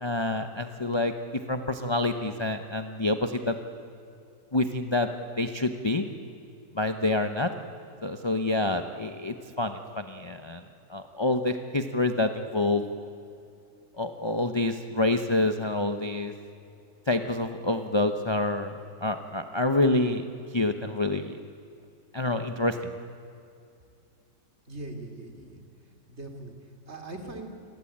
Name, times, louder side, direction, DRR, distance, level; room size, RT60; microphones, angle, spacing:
voice 1, 0.0-1.1 1.5-3.6 4.5-5.1 5.4-6.1 6.7-7.5 8.0-10.6 10.9-12.8 14.0-16.3 17.1-18.7 19.0-20.2 20.5-21.4 22.1-22.8, left 2 dB, 20° left, 6 dB, 0.8 m, -27 dB
voice 2, 24.6-25.6 26.1-27.5, right 2 dB, 35° right, 4 dB, 3.4 m, -41 dB
29.0 x 21.5 x 8.8 m, 2.5 s
omnidirectional pair, 1.9 m